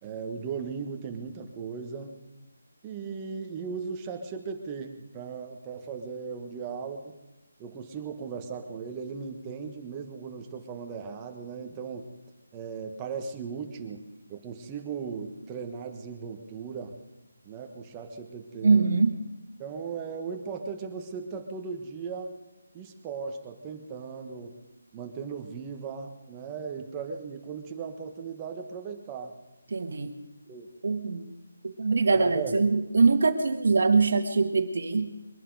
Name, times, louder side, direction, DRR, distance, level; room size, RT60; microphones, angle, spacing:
voice 1, 0.0-2.2 2.8-7.2 7.6-12.1 12.5-14.0 14.3-17.0 17.4-18.9 19.6-22.3 22.7-24.6 24.9-29.3 30.5-30.7 32.1-32.5, right 5 dB, 15° right, 4 dB, 1.4 m, -37 dB
voice 2, 18.6-19.1 29.7-30.1 30.8-31.3 31.6-35.1, right 4 dB, 60° right, 8 dB, 1.7 m, -23 dB
23.0 x 11.0 x 4.9 m, 1.0 s
figure-of-eight pair, 165°, 0 cm